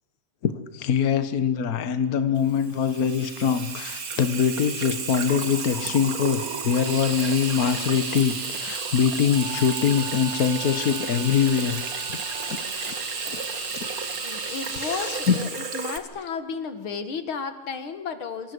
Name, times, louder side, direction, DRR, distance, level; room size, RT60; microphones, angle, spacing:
voice 1, 0.4-12.4 12.7-12.9 13.2-13.9 14.5-15.4, left 7 dB, 80° left, 0.8 m, -24 dB
Water tap faucet / Sink (filling or washing), 2.4-16.0, right 5 dB, 35° right, 1.5 m, -34 dB
sound 1, 6.8-15.5, right 4 dB, 85° right, 6.9 m, -35 dB
sound 2, 9.2-14.5, right 5 dB, 55° right, 2.8 m, -42 dB
voice 2, 14.2-18.5, left 5 dB, 45° left, 2.4 m, -33 dB
28.0 x 26.0 x 8.1 m
omnidirectional pair, 3.8 m